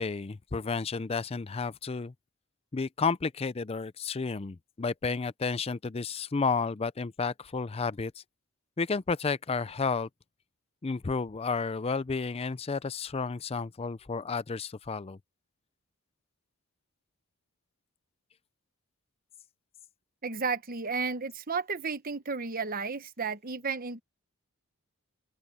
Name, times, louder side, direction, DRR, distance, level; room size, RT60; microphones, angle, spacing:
voice 1, 0.0-2.1 2.7-8.2 8.8-10.1 10.8-15.2, left 4 dB, 25° left, 0.4 m, -31 dB
voice 2, 20.2-24.0, right 4 dB, 40° right, 1.1 m, -33 dB
open air
head